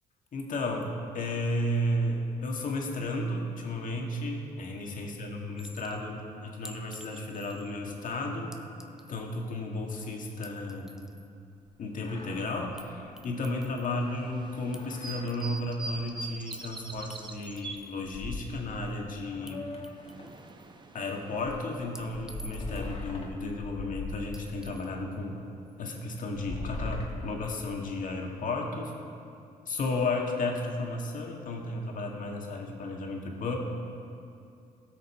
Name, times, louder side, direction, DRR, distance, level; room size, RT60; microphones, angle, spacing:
voice 1, 0.3-8.5 9.1-10.9 11.8-19.7 20.9-25.4 25.8-28.9 29.7-33.6, left 2 dB, 55° left, 1 dB, 1.8 m, -33 dB
Chink clink, 5.6-6.0 6.7-7.7 8.5-9.3 10.3-11.3 12.8-12.9 13.2-14.0 14.7-15.7 16.5-16.7 17.1-18.0 19.5-19.6 19.8-20.7 22.0-22.9 24.3-24.9, equal, 5° right, 0.7 m, -50 dB
sound 1, 11.7-11.8 11.9-12.5 12.8-12.9 13.2-13.3 14.7-15.3 15.6-15.7 16.9-17.0 17.4-18.9 19.3-20.4 21.2-24.7 25.3-25.4 26.2-28.1, left 3 dB, 40° left, 1.8 m, -40 dB
sound 2, 14.0-17.8 19.5-23.3, right 3 dB, 30° right, 0.9 m, -44 dB
17.0 x 6.4 x 4.4 m, 2.6 s
supercardioid pair, 75°, 16 cm